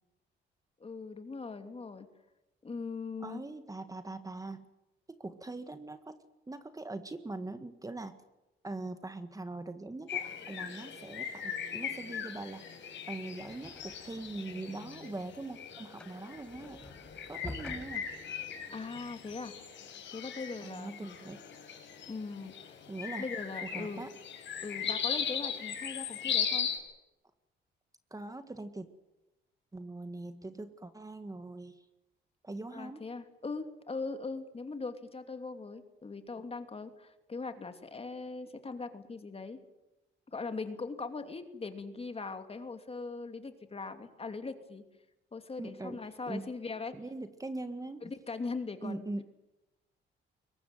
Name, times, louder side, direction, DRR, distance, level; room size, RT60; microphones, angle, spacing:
voice 1, 0.8-2.1 2.6-3.4 18.7-19.5 20.1-21.2 22.1-22.7 23.2-24.1 24.6-26.7 32.7-39.6 40.3-44.8 45.3-46.9 48.0-49.1, left 4 dB, 30° left, 8 dB, 2.9 m, -40 dB
voice 2, 3.2-4.6 5.1-6.2 6.5-8.2 8.6-12.7 13.1-16.8 17.3-18.1 20.6-21.4 22.9-23.3 23.6-24.1 28.1-28.9 29.7-31.8 32.4-33.0 45.6-46.5 46.9-48.1 48.8-49.2, right 2 dB, 15° right, 9 dB, 1.7 m, -42 dB
sound 1, 10.1-26.8, left 7 dB, 65° left, 5.3 m, -39 dB
sound 2, 13.4-14.5 14.9-19.4, left 1 dB, 5° left, 5.5 m, -48 dB
23.0 x 19.0 x 9.3 m, 0.98 s
cardioid pair, 90°, 20 cm